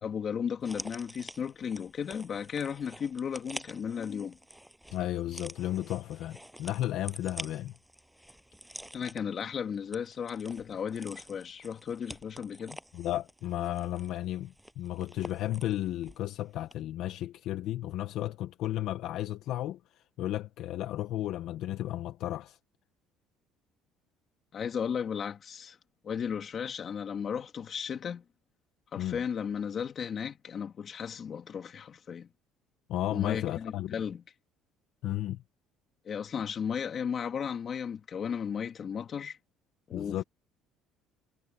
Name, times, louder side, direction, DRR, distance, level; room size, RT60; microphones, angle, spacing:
voice 1, 0.0-4.4 8.9-12.8 24.5-25.8 26.0-28.2 28.9-32.3 33.1-34.2 36.0-39.4 39.9-40.2, left 7 dB, 30° left, 2.8 m, -35 dB
sound 1, 0.6-16.3 16.6-16.7, equal, ahead, 7.2 m, -48 dB
voice 2, 4.9-7.7 12.9-22.6 29.0-29.2 32.9-33.9 35.0-35.4 39.9-40.2, left 13 dB, 55° left, 0.9 m, -33 dB
cardioid pair, 165°, 0 cm